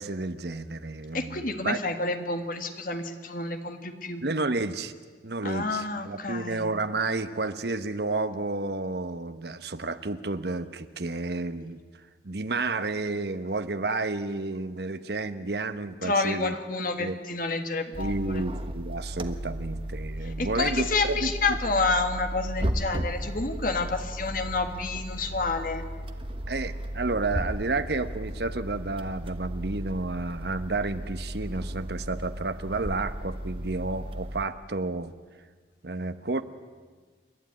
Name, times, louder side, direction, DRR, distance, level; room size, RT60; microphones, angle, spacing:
voice 1, 0.0-1.8 4.2-4.9 5.2-11.8 12.2-16.5 17.0-17.2 18.0-21.6 26.5-35.1 35.8-36.4, right 3 dB, 65° right, 11 dB, 1.0 m, -31 dB
voice 2, 1.1-4.2 5.4-6.7 16.0-18.4 20.4-25.8, left 3 dB, 50° left, 7 dB, 1.7 m, -29 dB
sound 1, 17.9-34.4, equal, 30° right, 1.1 m, -35 dB
28.0 x 12.0 x 9.7 m, 1.5 s
head